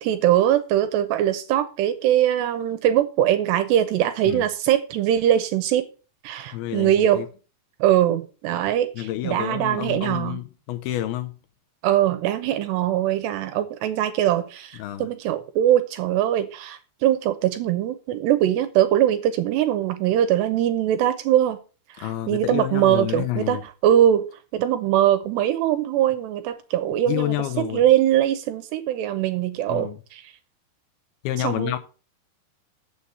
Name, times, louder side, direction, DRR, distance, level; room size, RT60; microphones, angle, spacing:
voice 1, 0.0-5.9 6.2-7.2 7.8-10.4 11.8-21.6 21.9-30.2 31.4-31.8, right 11 dB, 80° right, 2.9 m, -22 dB
voice 2, 6.5-7.3 9.0-11.4 14.8-15.1 22.0-23.6 27.1-27.8 29.7-30.0 31.2-31.8, left 14 dB, 80° left, 2.3 m, -28 dB
7.1 x 7.0 x 7.9 m
omnidirectional pair, 5.2 m